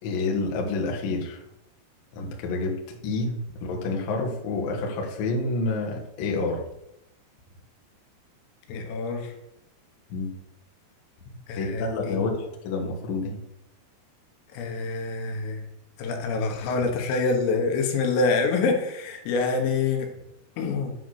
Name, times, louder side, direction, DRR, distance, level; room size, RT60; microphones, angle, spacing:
voice 1, 0.0-1.4 2.1-6.6 10.1-10.3 11.6-13.4, left 3 dB, 65° left, 0 dB, 2.4 m, -28 dB
voice 2, 8.7-9.3 11.5-12.2 14.5-15.6 16.0-20.1 20.6-20.9, left 4 dB, 85° left, 3 dB, 3.9 m, -26 dB
9.4 x 3.9 x 6.4 m, 0.81 s
omnidirectional pair, 5.7 m